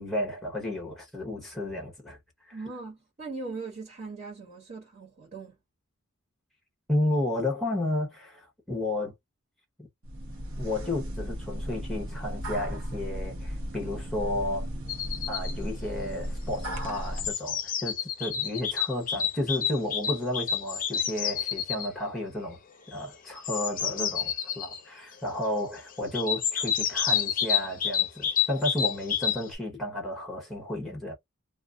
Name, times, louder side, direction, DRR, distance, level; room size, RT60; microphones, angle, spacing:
voice 1, 0.0-2.6 6.9-9.1 10.6-14.7 15.3-22.6 22.9-31.1, left 1 dB, ahead, 0.9 m, -32 dB
voice 2, 2.5-5.5, right 3 dB, 40° right, 1.5 m, -40 dB
sound 1, 10.0-17.3, equal, 65° right, 0.9 m, -35 dB
sound 2, 14.9-15.5 16.6-21.9 23.3-24.8 26.1-29.6, left 8 dB, 40° left, 0.5 m, -29 dB
2.4 x 2.4 x 2.3 m
head